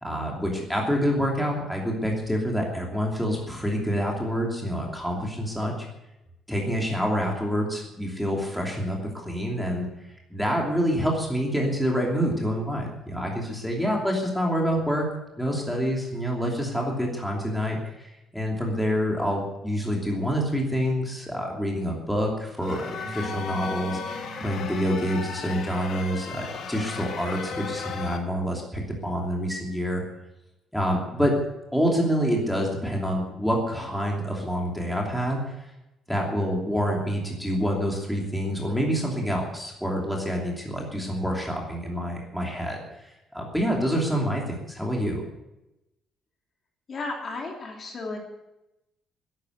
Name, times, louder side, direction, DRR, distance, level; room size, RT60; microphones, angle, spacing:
voice 1, 0.0-5.9 6.5-9.9 10.3-15.1 15.4-24.0 24.4-30.0 30.7-31.4 31.7-35.4 36.1-42.8 43.3-45.2, equal, ahead, -1 dB, 2.9 m, -27 dB
sound 1, 22.6-28.2, left 6 dB, 55° left, 1.7 m, -35 dB
sound 2, 23.0-29.7, right 5 dB, 30° right, 2.3 m, -49 dB
voice 2, 46.9-48.2, left 3 dB, 35° left, 1 dB, 2.8 m, -34 dB
13.5 x 11.0 x 7.9 m, 0.91 s
cardioid pair, 170°, 0 cm